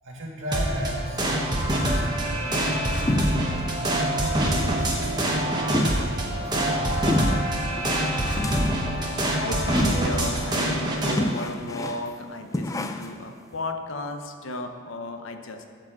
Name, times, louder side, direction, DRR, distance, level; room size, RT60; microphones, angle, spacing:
voice 1, 0.0-3.1 3.8-7.5, equal, 65° right, -2 dB, 2.3 m, -36 dB
sound 1, 0.5-11.2, right 1 dB, 20° right, 1.2 m, -25 dB
sound 2, 3.1-3.7 4.0-4.1 4.4-4.7 5.0-5.1 5.7-6.3 7.1-7.5 8.4-8.9 9.8-10.2 10.5-10.6 11.2-12.1 12.5-13.2, left 1 dB, 15° left, 0.3 m, -28 dB
voice 2, 9.2-15.6, left 2 dB, 60° left, 6 dB, 0.8 m, -34 dB
12.5 x 4.8 x 7.3 m, 2.2 s
head